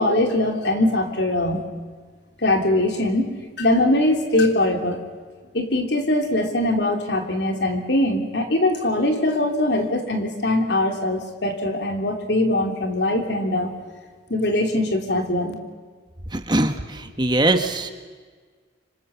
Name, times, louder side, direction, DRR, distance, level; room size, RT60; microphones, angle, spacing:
voice 1, 0.0-1.6 2.4-5.0 5.5-13.7 14.3-15.5, left 1 dB, 65° left, 4 dB, 3.2 m, -22 dB
voice 2, 16.3-16.7 17.2-17.9, right 2 dB, 25° right, 7 dB, 1.4 m, -20 dB
26.5 x 26.0 x 7.1 m, 1.5 s
head